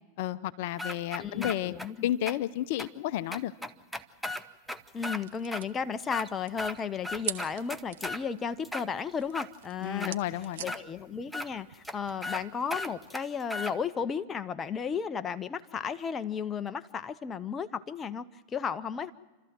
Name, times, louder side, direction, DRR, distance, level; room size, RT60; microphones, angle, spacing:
voice 1, 0.2-1.7 2.0-3.5 9.8-10.7, left 13 dB, 60° left, 14 dB, 0.7 m, -32 dB
sound 1, 0.8-1.9 2.3-2.4 2.8-2.9 3.3-5.2 5.5-5.6 6.0-6.8 7.0-8.2 8.6-9.5 10.0-10.1 10.7-10.8 11.3-11.5 11.8-11.9 12.2-12.4 12.7-13.7, left 1 dB, ahead, 0.9 m, -36 dB
voice 2, 1.2-2.1 4.9-10.2 10.6-19.1, left 6 dB, 25° left, 11 dB, 0.8 m, -34 dB
sound 2, 4.7-13.1, right 11 dB, 70° right, 0.9 m, -46 dB
29.0 x 13.5 x 7.7 m, 1.3 s
hypercardioid pair, 105°, 0 cm